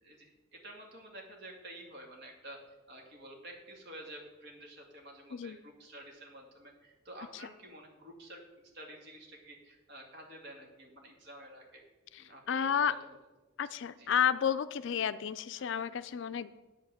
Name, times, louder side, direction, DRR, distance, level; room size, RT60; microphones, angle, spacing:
voice 1, 0.0-2.6 2.9-8.4 8.7-11.8 12.2-13.1 14.0-14.1 15.5-15.7, right 1 dB, 55° right, 0 dB, 2.3 m, -50 dB
voice 2, 12.1-13.0 13.6-16.6, left 8 dB, 60° left, 14 dB, 0.4 m, -31 dB
9.4 x 5.8 x 7.8 m, 1.1 s
head